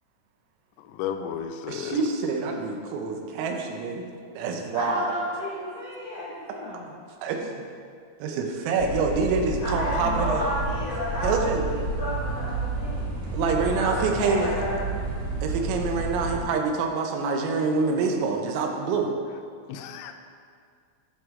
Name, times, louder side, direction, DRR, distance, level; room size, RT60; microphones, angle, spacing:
voice 1, 1.0-1.9 19.7-20.1, left 8 dB, 90° left, 6 dB, 3.3 m, -32 dB
voice 2, 1.7-4.1 4.3-5.1 7.2-7.7 8.2-10.5 11.2-11.6 13.3-14.6 15.4-19.1, right 4 dB, 85° right, 3 dB, 3.4 m, -26 dB
voice 3, 4.7-6.9 9.6-11.6 12.0-13.1 13.6-15.0, left 1 dB, 65° left, -10 dB, 1.6 m, -31 dB
sound 1, 8.8-16.4, right 3 dB, 65° right, 2.6 m, -31 dB
10.5 x 6.3 x 3.6 m, 2.2 s
omnidirectional pair, 6.0 m